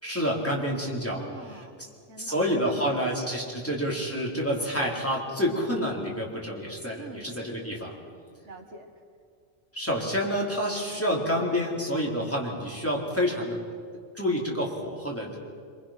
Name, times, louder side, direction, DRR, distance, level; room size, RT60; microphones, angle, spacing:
voice 1, 0.0-1.2 2.2-7.9 9.7-13.6 14.1-15.4, equal, 10° left, -3 dB, 4.0 m, -28 dB
voice 2, 1.1-3.0 7.0-7.3 8.4-8.9, right 2 dB, 75° right, 4 dB, 2.0 m, -45 dB
26.5 x 25.0 x 6.0 m, 2.2 s
omnidirectional pair, 1.2 m